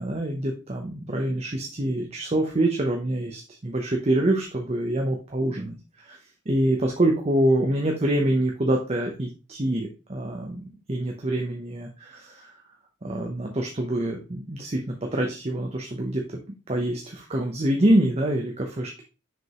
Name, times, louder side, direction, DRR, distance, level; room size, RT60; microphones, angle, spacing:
voice 1, 0.0-5.8 6.1-6.2 6.5-12.5 13.0-16.2 16.7-19.0, right 1 dB, 30° right, 2 dB, 0.8 m, -25 dB
6.2 x 5.1 x 3.0 m, 0.31 s
head